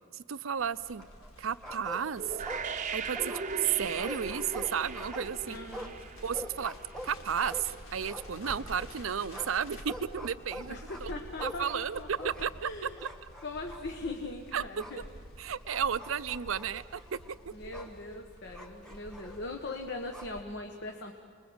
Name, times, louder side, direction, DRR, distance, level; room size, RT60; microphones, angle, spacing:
voice 1, 0.1-1.1 1.4-2.4 2.9-5.6 6.2-6.7 7.0-10.8 11.0-11.1 11.4-13.1 14.5-14.6 15.4-17.0, right 8 dB, 70° right, 16 dB, 0.6 m, -33 dB
Crackle, 0.6-20.4, equal, 80° left, 3.8 m, -49 dB
sound 1, 1.0-1.4 1.6-2.9 3.1-9.0 9.3-12.7 13.0-13.9 14.8-15.0 15.7-18.0 18.5-20.3, equal, 5° left, 1.5 m, -44 dB
sound 2, 2.2-7.1, right 5 dB, 35° right, 0.8 m, -39 dB
voice 2, 5.5-5.9 10.7-12.3 12.6-13.0 13.4-15.0 17.5-21.1, left 2 dB, 55° left, 3 dB, 1.4 m, -40 dB
29.0 x 21.0 x 8.0 m, 2.1 s
head